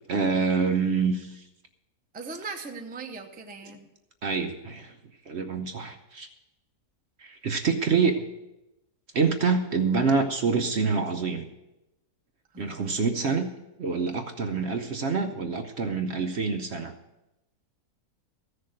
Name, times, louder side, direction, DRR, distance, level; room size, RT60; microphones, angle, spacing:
voice 1, 0.1-1.4 4.2-4.9 5.3-6.3 7.2-8.3 9.1-11.5 12.6-13.5 13.8-16.9, right 5 dB, 55° right, 6 dB, 0.9 m, -26 dB
voice 2, 2.1-3.9 12.5-12.9, right 4 dB, 10° right, 3 dB, 0.6 m, -39 dB
15.0 x 6.6 x 6.4 m, 0.94 s
omnidirectional pair, 1.6 m